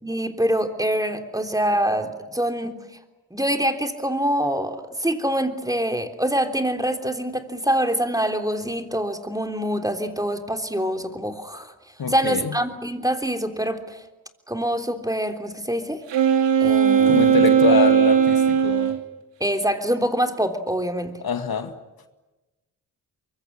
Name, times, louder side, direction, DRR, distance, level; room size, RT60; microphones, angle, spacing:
voice 1, 0.0-2.8 3.3-11.7 12.1-14.0 14.5-16.0 16.6-17.5 19.4-21.1, right 1 dB, 10° right, 3.4 m, -25 dB
voice 2, 12.0-12.5 17.1-19.0 21.2-21.7, left 6 dB, 50° left, 2.1 m, -24 dB
Wind instrument woodwind instrument, 16.1-19.0, right 8 dB, 70° right, 2.5 m, -17 dB
23.5 x 23.0 x 10.0 m
hypercardioid pair, 40°, 45 cm